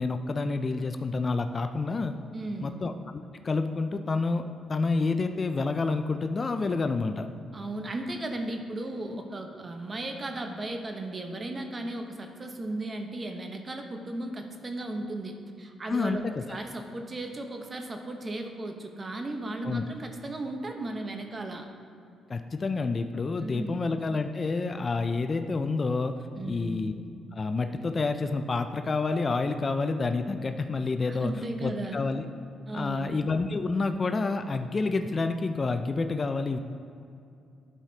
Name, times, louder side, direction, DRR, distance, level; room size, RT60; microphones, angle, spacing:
voice 1, 0.0-2.2 2.6-4.4 4.7-7.3 15.9-16.4 19.6-19.8 22.3-26.2 26.5-27.0 27.3-31.3 31.6-32.2 32.7-36.6, left 3 dB, 35° left, 8 dB, 0.4 m, -28 dB
voice 2, 2.3-2.8 7.5-16.2 16.5-21.7 23.4-23.8 26.3-26.9 31.1-32.0 32.7-33.2, right 2 dB, 30° right, 4 dB, 0.9 m, -36 dB
12.0 x 4.9 x 2.8 m, 2.5 s
cardioid pair, 90°, 0 cm